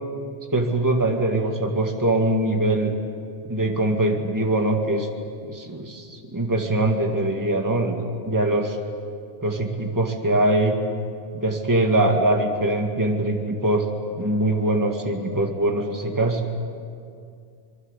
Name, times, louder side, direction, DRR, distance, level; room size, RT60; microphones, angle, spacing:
voice 1, 0.5-3.0 3.4-5.1 5.5-8.8 9.4-10.8 11.3-13.8 14.2-16.4, right 1 dB, 15° right, 2 dB, 2.0 m, -22 dB
26.0 x 22.0 x 8.3 m, 2.4 s
omnidirectional pair, 1.2 m